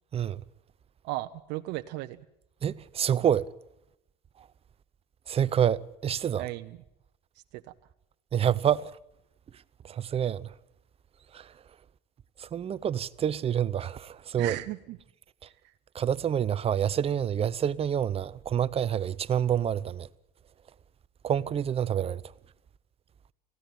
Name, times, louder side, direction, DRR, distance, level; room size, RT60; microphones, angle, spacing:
voice 1, 1.0-2.2 6.4-6.8 7.5-7.6 14.4-15.0, right 18 dB, 55° right, 0.9 m, -35 dB
voice 2, 2.6-3.4 4.4-4.5 5.3-6.5 8.3-8.9 9.8-10.5 11.3-11.5 12.4-14.6 15.4-15.5 15.9-20.1 21.2-22.2, right 9 dB, 30° right, 0.8 m, -27 dB
19.5 x 15.5 x 9.4 m
supercardioid pair, 100°, 21 cm